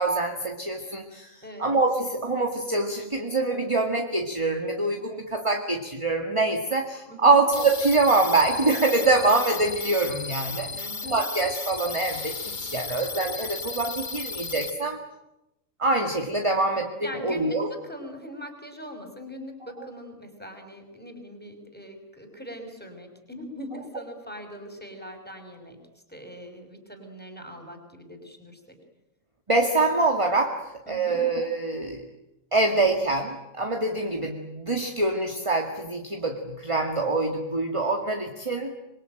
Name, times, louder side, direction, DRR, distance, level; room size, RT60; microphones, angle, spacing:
voice 1, 0.0-15.0 15.8-17.7 29.5-32.0 32.5-38.7, right 3 dB, 20° right, 3 dB, 2.0 m, -25 dB
voice 2, 7.1-7.4 10.7-11.2 17.0-25.8 26.1-28.8 30.9-31.2, equal, 5° left, 5 dB, 5.4 m, -41 dB
sound 1, 7.5-14.7, left 4 dB, 35° left, 1.4 m, -35 dB
26.0 x 23.0 x 9.1 m, 0.88 s
omnidirectional pair, 1.4 m